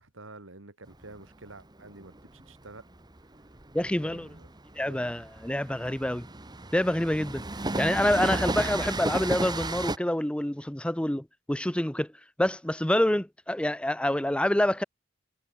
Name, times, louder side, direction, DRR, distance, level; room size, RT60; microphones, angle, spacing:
voice 1, 0.0-2.9 3.8-4.5 4.8-5.0, right 2 dB, 90° right, 3.0 m, -49 dB
Train, 0.9-10.0, right 2 dB, 20° right, 1.7 m, -34 dB
voice 2, 3.7-4.3 4.8-6.3 6.7-7.4 7.8-12.1 12.4-14.8, left 1 dB, 5° left, 0.7 m, -27 dB
head